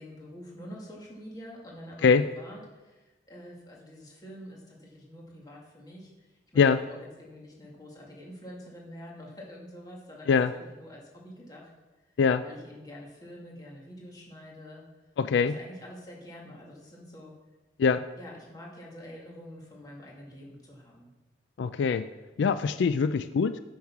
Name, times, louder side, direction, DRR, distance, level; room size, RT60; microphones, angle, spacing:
voice 1, 0.0-11.7 12.4-14.8 15.4-17.3 18.2-21.1 23.0-23.1, equal, 20° left, -3 dB, 2.1 m, -46 dB
voice 2, 15.2-15.6 17.8-18.0 21.6-22.1 22.4-23.6, left 5 dB, 80° left, 12 dB, 0.3 m, -23 dB
9.3 x 6.3 x 5.8 m, 1.1 s
head